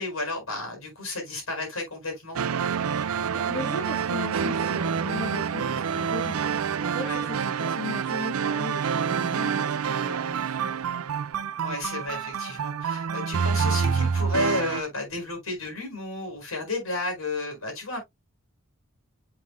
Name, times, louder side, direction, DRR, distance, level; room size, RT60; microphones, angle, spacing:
voice 1, 0.0-2.4 7.0-7.2 11.6-18.0, left 2 dB, 75° left, 4.7 m, -32 dB
sound 1, 2.3-14.8, right 6 dB, 85° right, 0.5 m, -27 dB
voice 2, 3.3-10.8, left 2 dB, 25° left, 3.5 m, -37 dB
7.6 x 5.6 x 2.2 m
head